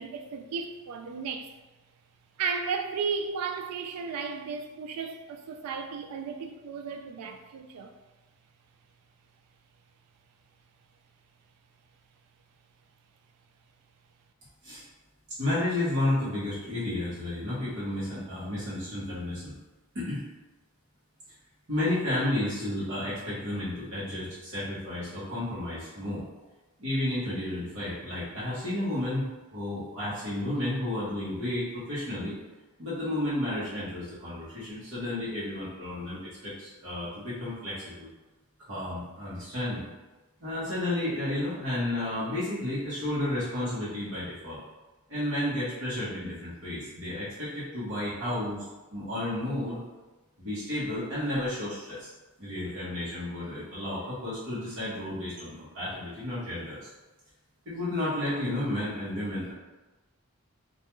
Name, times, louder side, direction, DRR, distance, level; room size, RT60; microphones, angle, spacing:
voice 1, 0.0-1.5 2.4-7.9, right 5 dB, 80° right, 0.3 m, -34 dB
voice 2, 15.4-19.5 19.9-20.2 21.7-26.2 26.8-32.4 32.8-38.1 38.7-39.9 40.4-44.6 45.1-48.7 48.9-49.8 50.4-52.1 52.4-56.9 57.7-59.5, left 1 dB, 55° right, 0.9 m, -32 dB
2.3 x 2.2 x 2.9 m
head